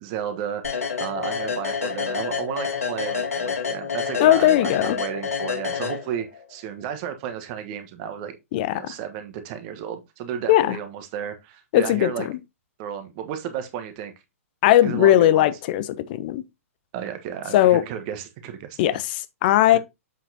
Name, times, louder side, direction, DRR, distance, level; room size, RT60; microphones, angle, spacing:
voice 1, 0.0-8.3 8.7-12.3 12.8-14.1 14.8-15.5 16.9-18.8, right 9 dB, 35° right, 1.4 m, -33 dB
sound 1, 0.6-6.4, left 6 dB, 80° left, 2.7 m, -28 dB
voice 2, 4.2-5.0 8.5-8.9 10.5-10.8 11.7-12.1 14.6-16.4 17.5-17.8 18.8-19.8, left 13 dB, 40° left, 0.7 m, -18 dB
7.5 x 5.9 x 2.9 m
figure-of-eight pair, 115°, 8 cm